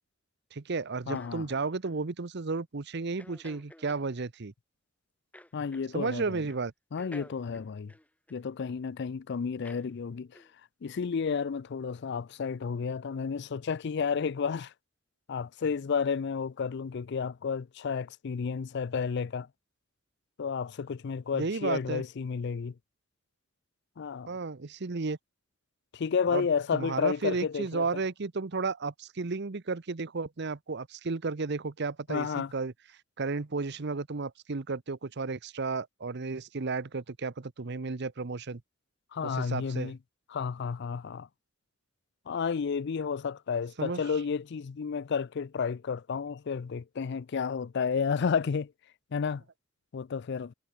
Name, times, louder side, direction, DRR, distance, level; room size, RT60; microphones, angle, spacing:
voice 1, 0.5-4.5 5.9-6.7 21.3-22.0 24.3-25.2 26.3-26.5 26.7-32.7 33.2-38.6 39.2-39.9 43.8-44.0, right 4 dB, 60° right, 0.8 m, -33 dB
voice 2, 1.1-1.5 5.5-6.4 6.9-7.9 8.3-10.4 10.8-14.7 15.3-19.5 20.4-22.7 24.0-24.3 25.9-27.9 32.1-32.5 39.1-40.0 40.3-41.3 42.3-48.7 49.1-49.4 49.9-50.5, left 6 dB, 60° left, 0.4 m, -31 dB
sound 1, 1.1-2.0 3.2-4.1 5.3-6.2 6.5-6.7 7.0-8.8 9.6-9.9 10.3-10.5, left 1 dB, 10° left, 3.4 m, -52 dB
head